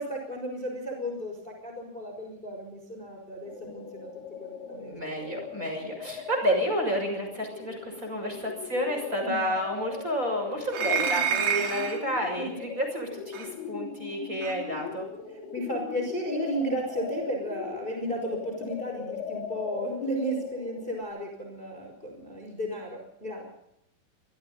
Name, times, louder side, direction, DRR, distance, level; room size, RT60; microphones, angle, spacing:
voice 1, 0.0-5.0 7.6-7.7 8.2-8.3 9.2-9.4 12.4-12.6 15.3-23.4, equal, 10° left, 2 dB, 5.1 m, -34 dB
sound 1, 3.4-21.0, left 7 dB, 65° left, 4.4 m, -40 dB
voice 2, 4.6-15.0, equal, 15° right, 3 dB, 6.7 m, -30 dB
sound 2, 10.7-12.0 13.3-13.5 14.4-14.6, right 8 dB, 70° right, 5.4 m, -28 dB
27.5 x 24.0 x 4.1 m, 0.77 s
omnidirectional pair, 5.1 m